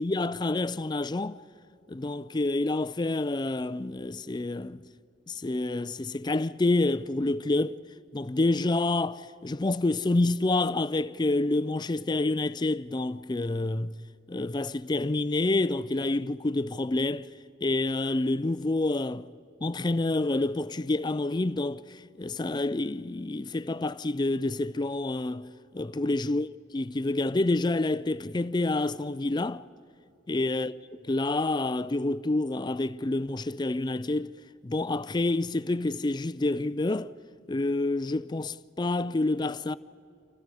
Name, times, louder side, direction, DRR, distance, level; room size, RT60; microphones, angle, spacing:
voice 1, 0.0-1.4 1.9-4.9 5.3-7.8 8.1-13.9 14.3-17.3 17.6-19.3 19.6-26.5 26.7-29.7 30.3-30.7 31.0-34.3 34.6-37.1 37.5-39.7, left 2 dB, 25° left, 0.5 m, -28 dB
29.0 x 28.0 x 4.9 m
head